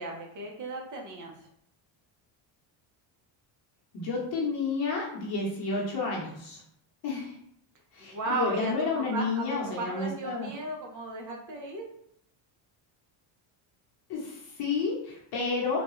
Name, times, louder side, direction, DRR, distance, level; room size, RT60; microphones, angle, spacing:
voice 1, 0.0-1.3 8.0-9.4 9.8-11.9, right 2 dB, 40° right, 1 dB, 0.7 m, -35 dB
voice 2, 3.9-6.6 7.0-7.4 7.9-10.5 14.1-15.8, left 4 dB, 50° left, -3 dB, 0.9 m, -31 dB
3.8 x 2.3 x 3.1 m, 0.68 s
cardioid pair, 160°, 48 cm